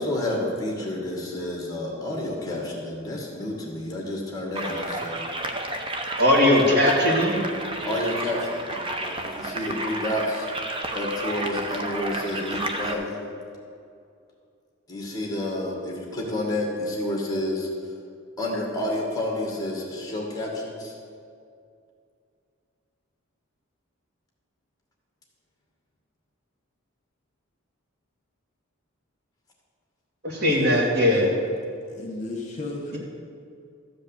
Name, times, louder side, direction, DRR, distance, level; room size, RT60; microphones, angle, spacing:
voice 1, 0.0-5.3 7.8-10.5 10.9-13.2 14.9-17.7 18.4-20.9, left 1 dB, 20° left, -1 dB, 2.1 m, -29 dB
sound 1, 4.5-12.9, right 2 dB, 25° right, 0.8 m, -31 dB
voice 2, 6.2-7.4 30.2-31.3, left 1 dB, 50° right, -2 dB, 2.3 m, -19 dB
voice 3, 30.5-31.3 31.9-33.0, left 2 dB, 35° left, -1 dB, 2.0 m, -34 dB
13.5 x 5.3 x 8.3 m, 2.3 s
head